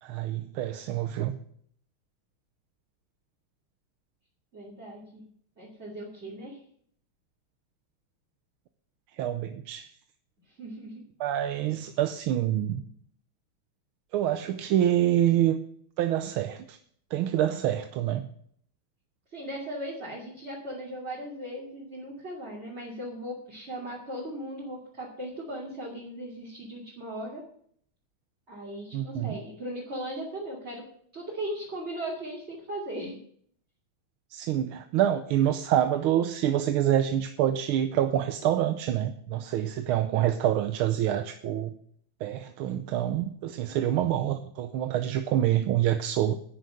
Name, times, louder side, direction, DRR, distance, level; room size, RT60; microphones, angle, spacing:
voice 1, 0.0-1.4 9.2-9.9 11.2-12.8 14.1-15.6 16.0-16.8 17.1-18.3 28.9-29.3 34.3-41.7 42.2-46.3, right 11 dB, 85° right, 8 dB, 1.6 m, -26 dB
voice 2, 4.5-5.2 5.6-6.6 10.6-11.0 19.3-27.4 28.5-30.8 31.1-33.2, right 1 dB, 30° right, -5 dB, 3.0 m, -38 dB
11.0 x 9.2 x 6.4 m, 0.63 s
omnidirectional pair, 2.3 m